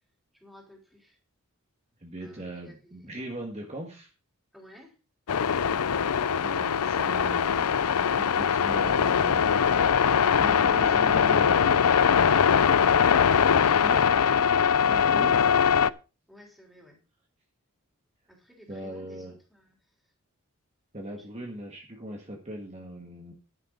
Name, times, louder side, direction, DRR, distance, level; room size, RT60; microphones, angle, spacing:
voice 1, 0.3-1.2 2.2-3.0 4.5-4.9 16.3-17.0 18.3-19.8 21.2-21.3, equal, ahead, 0 dB, 3.5 m, -54 dB
voice 2, 2.0-4.1 6.4-9.5 10.4-11.9 13.6-14.1 14.9-15.5 18.7-19.4 20.9-23.3, equal, 30° right, 1 dB, 1.8 m, -39 dB
sound 1, 5.3-15.9, left 7 dB, 85° left, 0.5 m, -22 dB
11.0 x 11.0 x 3.9 m, 0.33 s
head